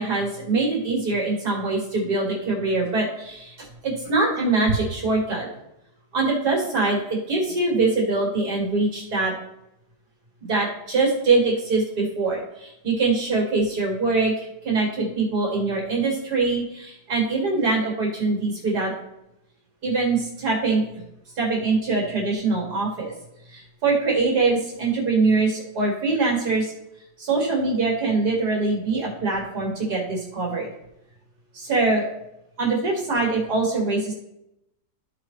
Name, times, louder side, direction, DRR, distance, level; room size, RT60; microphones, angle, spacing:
voice 1, 0.0-5.5 6.1-7.0 7.3-9.3 10.4-18.9 19.8-20.8 21.4-23.1 23.5-26.7 27.2-30.7 31.5-32.1 32.6-34.1, right 3 dB, 65° right, -2 dB, 2.7 m, -23 dB
14.0 x 4.8 x 3.2 m, 0.86 s
omnidirectional pair, 1.8 m